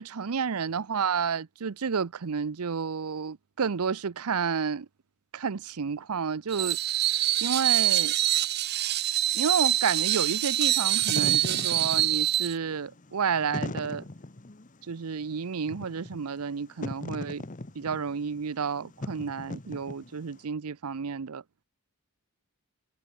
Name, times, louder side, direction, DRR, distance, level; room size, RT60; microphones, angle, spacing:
voice 1, 0.0-4.9 5.3-6.8 7.1-8.2 9.3-14.0 14.9-17.4 17.7-21.4, right 6 dB, 80° right, 0.6 m, -31 dB
Screech, 6.5-12.6, right 13 dB, 45° right, 0.9 m, -25 dB
Wind / Fire, 10.8-20.4, left 2 dB, 35° left, 1.0 m, -39 dB
head